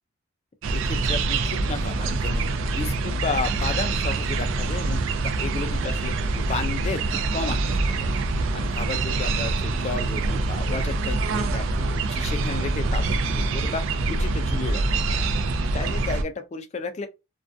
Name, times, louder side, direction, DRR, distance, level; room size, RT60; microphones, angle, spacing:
sound 1, 0.6-16.2, right 3 dB, 65° right, 0.3 m, -25 dB
voice 1, 0.7-2.4 2.7-5.0 5.4-8.2 8.5-14.8 15.1-15.2 15.7-17.1, left 4 dB, 30° left, 0.3 m, -33 dB
2.4 x 2.2 x 2.5 m
head